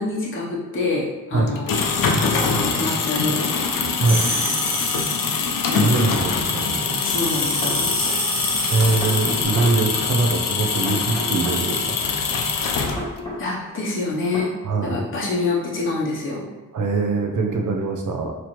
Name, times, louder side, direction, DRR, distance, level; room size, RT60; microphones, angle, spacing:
voice 1, 0.0-1.8 2.2-3.5 5.7-6.0 7.0-8.2 13.4-14.5 14.8-16.5, left 3 dB, 40° left, -5 dB, 0.7 m, -26 dB
sound 1, 1.5-13.3, left 5 dB, 75° left, 0.5 m, -24 dB
sound 2, 4.0-5.6 6.8-9.4, right 1 dB, 25° right, 0.9 m, -28 dB
voice 2, 5.6-7.0 8.7-12.0 14.6-15.1 16.7-18.3, right 3 dB, 65° right, 2 dB, 0.6 m, -22 dB
sound 3, 6.0-6.2 7.3-7.8 9.0-9.7 10.9-11.6 13.0-13.4 14.3-14.5, equal, 15° left, 0.9 m, -32 dB
4.2 x 3.0 x 3.0 m, 1.2 s
wide cardioid pair, 170°, 33 cm